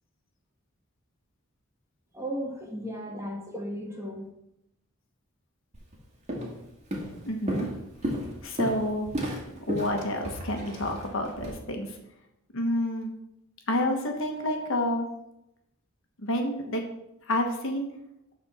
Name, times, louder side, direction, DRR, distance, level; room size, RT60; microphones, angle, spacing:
voice 1, 2.1-4.3, equal, 15° right, -1 dB, 1.7 m, -35 dB
Walk footsteps, 5.7-5.9 6.3-6.6 6.9-11.5, equal, 35° right, 2.2 m, -33 dB
voice 2, 7.3-7.7 8.4-9.1 9.7-11.9 12.5-13.1 13.7-15.1 16.2-16.8 17.3-17.9, left 1 dB, 65° left, 3 dB, 1.4 m, -29 dB
12.5 x 4.4 x 4.3 m, 0.84 s
head